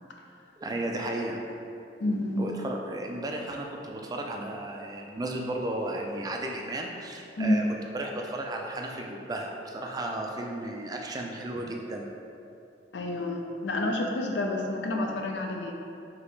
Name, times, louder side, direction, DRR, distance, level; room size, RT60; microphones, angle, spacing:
voice 1, 0.6-1.4 2.4-7.6 7.9-12.1, right 1 dB, 20° right, 1 dB, 0.3 m, -34 dB
voice 2, 2.0-2.4 7.4-7.6 12.9-15.7, left 1 dB, 75° left, 2 dB, 0.5 m, -29 dB
4.9 x 3.0 x 3.2 m, 2.7 s
head